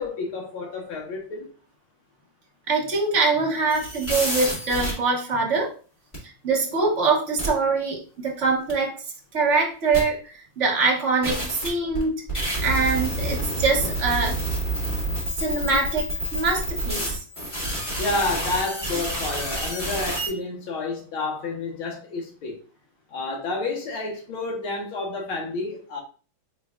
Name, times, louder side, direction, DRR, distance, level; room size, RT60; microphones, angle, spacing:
voice 1, 0.0-1.5 18.0-22.6 23.1-26.0, left 3 dB, 80° left, 2.0 m, -30 dB
voice 2, 2.7-5.7 6.4-9.0 9.3-12.3 12.6-14.4 15.4-17.2, right 4 dB, 45° right, 1.0 m, -23 dB
sound 1, 3.7-4.9 6.1-6.2 7.4-7.5 8.7-8.8 9.9-10.0 11.2-20.3, right 1 dB, 25° left, 2.0 m, -28 dB
4.7 x 4.0 x 2.3 m
omnidirectional pair, 2.3 m